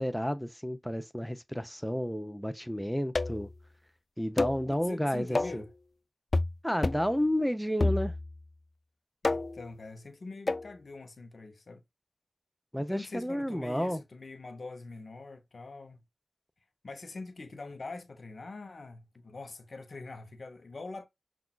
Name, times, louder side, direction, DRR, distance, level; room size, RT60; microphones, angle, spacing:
voice 1, 0.0-3.5 4.2-5.6 6.6-8.1 12.7-14.0, equal, ahead, 0.6 m, -31 dB
sound 1, 3.2-3.5 4.4-4.7 5.4-5.7 6.3-6.6 6.8-7.1 7.8-8.4 9.2-9.7 10.5-10.7, left 2 dB, 45° left, 0.3 m, -29 dB
voice 2, 4.7-5.7 9.2-11.8 12.8-16.0 16.8-21.1, left 3 dB, 65° left, 0.7 m, -44 dB
5.8 x 2.4 x 2.3 m
cardioid pair, 45°, 0 cm